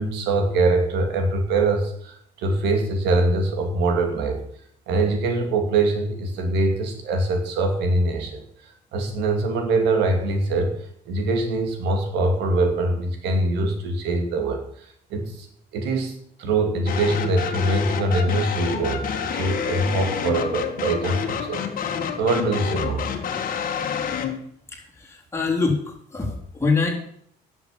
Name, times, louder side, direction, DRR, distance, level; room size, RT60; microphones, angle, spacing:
voice 1, 0.0-4.4 4.9-10.8 11.1-15.5 15.7-23.1, right 2 dB, 85° right, 5 dB, 2.6 m, -23 dB
sound 1, 16.9-24.4, left 7 dB, 55° left, 1.9 m, -28 dB
voice 2, 24.7-26.9, left 4 dB, 15° left, -1 dB, 3.7 m, -25 dB
10.5 x 7.3 x 8.9 m, 0.65 s
cardioid pair, 110°, 17 cm